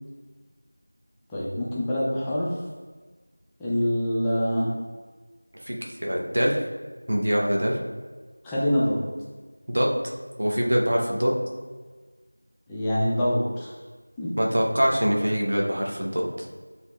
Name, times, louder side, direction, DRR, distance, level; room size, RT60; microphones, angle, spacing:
voice 1, 1.3-2.6 3.6-4.7 8.4-9.0 12.7-13.7 14.2-14.3, equal, 5° left, -8 dB, 0.3 m, -25 dB
voice 2, 6.0-6.6 7.1-7.8 9.7-10.0 10.4-11.4 14.4-16.5, equal, 45° right, -1 dB, 0.8 m, -23 dB
7.3 x 2.7 x 2.3 m, 1.4 s
figure-of-eight pair, 175°, 0 cm